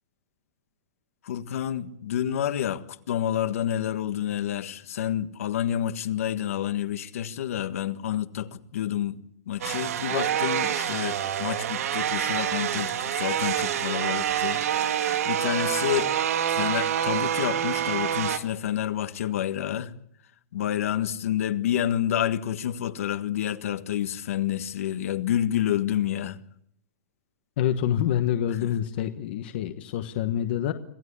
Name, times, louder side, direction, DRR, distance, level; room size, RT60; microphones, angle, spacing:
voice 1, 1.2-16.1 16.5-19.9 20.5-26.4 28.6-28.7, left 11 dB, 60° left, 1.7 m, -29 dB
sound 1, 9.6-18.4, right 10 dB, 65° right, 2.2 m, -27 dB
voice 2, 27.6-30.7, left 10 dB, 40° left, 1.3 m, -26 dB
26.0 x 17.0 x 8.5 m
supercardioid pair, 180°, 9 cm